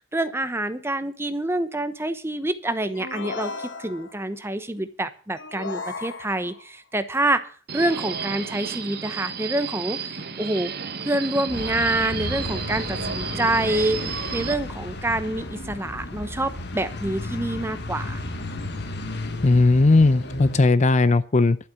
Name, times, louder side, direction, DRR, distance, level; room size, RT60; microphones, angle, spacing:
voice 1, 0.1-10.1 10.4-10.7 11.0-18.2, right 1 dB, 15° right, 0.9 m, -27 dB
sound 1, 2.9-4.3 5.4-6.7, left 4 dB, 90° left, 1.3 m, -35 dB
Subway metro underground, 7.7-14.5, right 6 dB, 60° right, 1.2 m, -32 dB
sound 2, 11.5-20.6, left 2 dB, 65° left, 1.5 m, -33 dB
voice 2, 19.4-21.6, left 3 dB, 40° left, 0.6 m, -17 dB
12.0 x 7.9 x 7.3 m
head